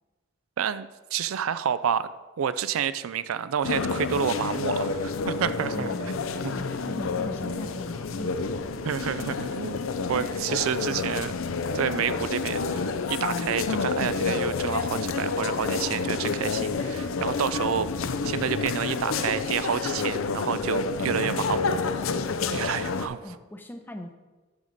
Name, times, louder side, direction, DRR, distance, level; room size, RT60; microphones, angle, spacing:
voice 1, 0.6-2.1 2.4-5.9 6.4-6.5 8.8-11.3 11.7-12.8 13.1-21.8 22.5-23.2, right 8 dB, 90° right, 14 dB, 0.4 m, -29 dB
sound 1, 3.6-23.1, left 4 dB, 80° left, 0.5 m, -29 dB
voice 2, 5.7-8.7 21.0-24.1, equal, 10° left, 6 dB, 0.6 m, -41 dB
10.5 x 6.5 x 4.0 m, 1.2 s
head